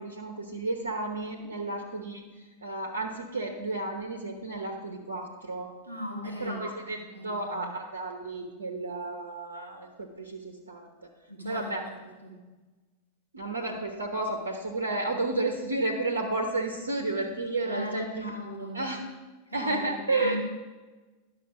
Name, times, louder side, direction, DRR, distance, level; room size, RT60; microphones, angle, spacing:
voice 1, 0.0-2.2 2.6-5.7 6.2-10.9 11.4-11.9 13.3-18.3 18.7-19.0 19.5-20.4, right 2 dB, 70° right, 4 dB, 1.0 m, -32 dB
voice 2, 5.8-6.6 7.1-7.7 11.3-12.5 17.7-19.0 19.5-20.4, left 1 dB, 90° left, -2 dB, 2.0 m, -38 dB
11.0 x 6.4 x 5.0 m, 1.3 s
figure-of-eight pair, 90°, 0 cm